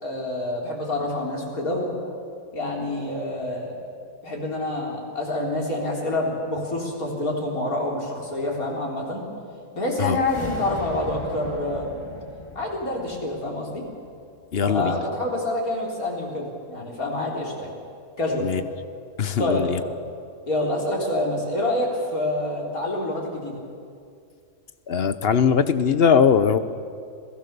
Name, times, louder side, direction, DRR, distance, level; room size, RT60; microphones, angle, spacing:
voice 1, 0.0-1.9 2.5-3.8 4.2-9.2 9.7-12.0 12.6-13.8 14.7-17.7 18.2-18.5 19.4-19.7 20.5-23.6, left 1 dB, 85° left, -2 dB, 4.4 m, -27 dB
sound 1, 10.1-14.5, left 2 dB, 20° left, 1.6 m, -38 dB
voice 2, 14.5-15.0 18.4-18.6 19.2-19.8 24.9-26.6, left 6 dB, 50° left, 12 dB, 1.0 m, -20 dB
27.0 x 17.5 x 6.9 m, 2.3 s
omnidirectional pair, 1.5 m